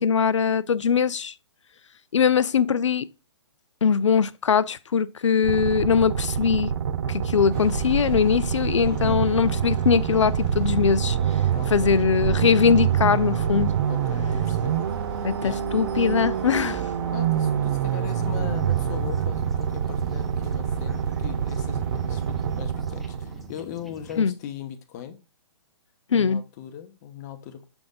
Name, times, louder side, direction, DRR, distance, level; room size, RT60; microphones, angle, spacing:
voice 1, 0.0-1.3 2.1-3.0 3.8-6.7 7.1-11.2 11.7-13.7 15.2-16.8 24.2-24.3 26.1-26.4, left 6 dB, 85° left, 0.4 m, -21 dB
sound 1, 5.4-23.5, right 8 dB, 55° right, 0.7 m, -26 dB
sound 2, 7.5-22.6, right 3 dB, 25° right, 1.5 m, -37 dB
voice 2, 8.9-9.3 11.5-12.0 13.9-14.8 15.1-15.7 16.0-16.1 17.1-25.2 26.1-27.6, left 9 dB, 35° left, 0.9 m, -39 dB
sound 3, 17.8-24.2, left 1 dB, ahead, 0.7 m, -48 dB
6.9 x 3.5 x 3.8 m
hypercardioid pair, 140°, 15 cm